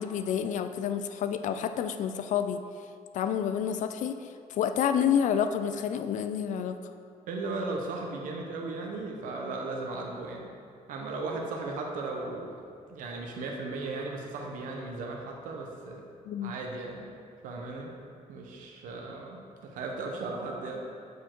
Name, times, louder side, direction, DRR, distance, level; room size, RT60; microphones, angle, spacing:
voice 1, 0.0-2.6 3.1-6.9 16.3-16.6, left 8 dB, 70° left, 9 dB, 0.4 m, -29 dB
voice 2, 7.3-10.5 10.9-12.6 12.9-16.0 16.4-17.1 17.4-17.9 18.3-20.9, right 3 dB, 85° right, 0 dB, 0.9 m, -36 dB
8.2 x 4.5 x 4.5 m, 2.4 s
cardioid pair, 120°, 13 cm